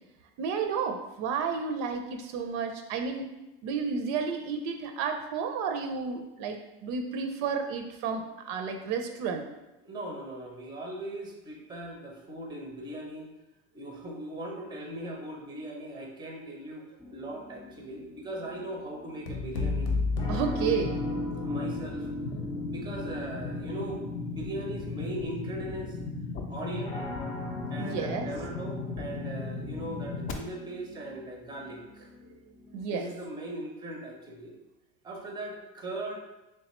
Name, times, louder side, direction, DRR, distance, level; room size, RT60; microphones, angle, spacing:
voice 1, 0.4-3.3 3.6-9.4 20.3-21.0 27.8-28.3 32.7-33.1, right 5 dB, 65° right, 5 dB, 0.5 m, -31 dB
voice 2, 9.8-13.3 13.7-16.8 17.1-19.9 21.4-22.1 22.7-26.0 26.5-27.0 27.7-32.1 32.9-34.5 35.0-36.2, right 1 dB, 15° right, 1 dB, 0.5 m, -39 dB
sound 1, 17.0-32.8, left 1 dB, 20° left, 0.8 m, -40 dB
sound 2, 19.3-21.5, left 3 dB, 85° left, 0.8 m, -31 dB
sound 3, 20.3-30.3, left 4 dB, 40° left, 0.4 m, -37 dB
3.4 x 3.2 x 3.0 m, 0.97 s
cardioid pair, 140°, 34 cm